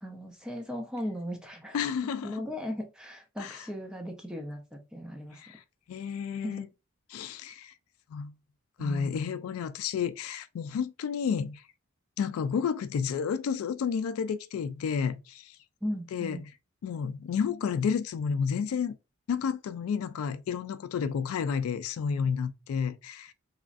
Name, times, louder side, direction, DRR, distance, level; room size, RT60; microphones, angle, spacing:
voice 1, 0.0-1.8 2.2-5.4 6.4-6.6 8.8-9.3 15.8-16.4, equal, 5° right, 0.4 m, -37 dB
voice 2, 1.7-2.4 3.4-3.7 5.3-5.6 5.9-6.7 7.1-7.7 8.1-8.3 8.8-11.6 12.2-15.6 16.1-16.5 16.8-18.9 19.3-23.3, left 6 dB, 80° left, 0.3 m, -31 dB
3.0 x 2.5 x 2.4 m
head